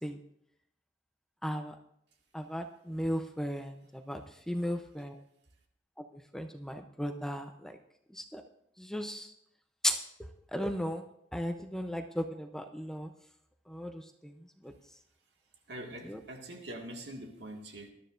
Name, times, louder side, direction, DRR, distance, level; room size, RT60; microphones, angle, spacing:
voice 1, 1.4-1.7 2.3-3.7 4.1-4.2 4.5-5.2 6.3-7.8 8.2-8.4 8.8-9.3 9.8-10.0 10.5-11.0 11.3-13.1 13.7-14.3 14.6-14.7 16.1-16.2, equal, 5° left, 5 dB, 0.7 m, -35 dB
voice 2, 15.7-17.9, right 1 dB, 80° right, 2 dB, 2.1 m, -44 dB
20.0 x 12.0 x 2.6 m, 0.74 s
head